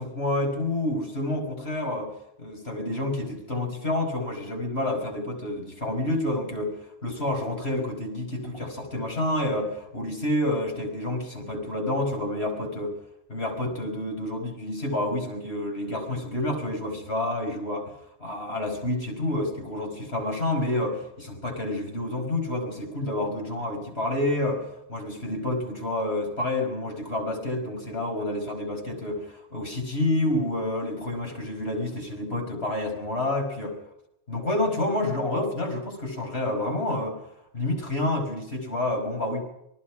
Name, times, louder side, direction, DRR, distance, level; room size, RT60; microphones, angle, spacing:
voice 1, 0.0-2.1 2.4-6.8 7.0-13.0 13.3-33.8 34.3-37.2 37.5-39.4, left 1 dB, 65° left, 2 dB, 5.8 m, -29 dB
27.5 x 19.5 x 5.0 m, 0.81 s
omnidirectional pair, 1.2 m